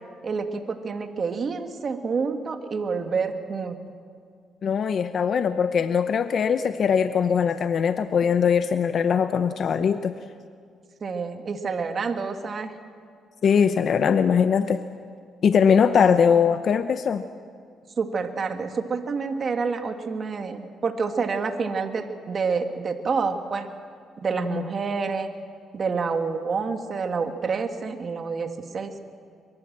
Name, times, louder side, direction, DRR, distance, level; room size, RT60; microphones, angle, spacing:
voice 1, 0.2-3.8 11.0-12.7 18.0-23.7 24.2-25.3 25.7-28.9, right 5 dB, 45° right, 6 dB, 2.0 m, -28 dB
voice 2, 4.6-10.1 13.4-14.8 15.4-17.2 24.4-24.6, left 7 dB, 55° left, 10 dB, 0.8 m, -21 dB
23.0 x 23.0 x 7.5 m, 2.2 s
cardioid pair, 90°, 0 cm